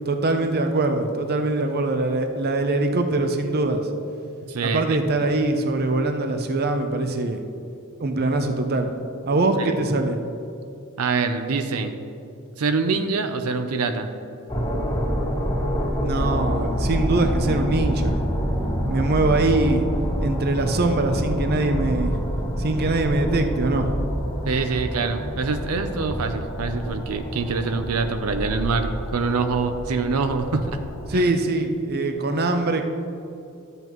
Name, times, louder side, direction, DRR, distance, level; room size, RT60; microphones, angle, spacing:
voice 1, 0.1-3.9 4.6-7.4 8.0-8.9 9.3-10.2 16.0-18.2 18.9-19.8 20.2-22.2 22.6-23.9 31.1-32.8, right 2 dB, 45° right, 6 dB, 0.6 m, -23 dB
voice 2, 4.5-5.0 9.6-9.7 11.0-11.9 12.6-14.1 24.5-30.7 31.1-31.3, right 4 dB, 90° right, 8 dB, 0.6 m, -25 dB
sound 1, 14.5-31.1, equal, 25° left, 2.3 m, -27 dB
12.5 x 8.0 x 3.0 m, 2.6 s
head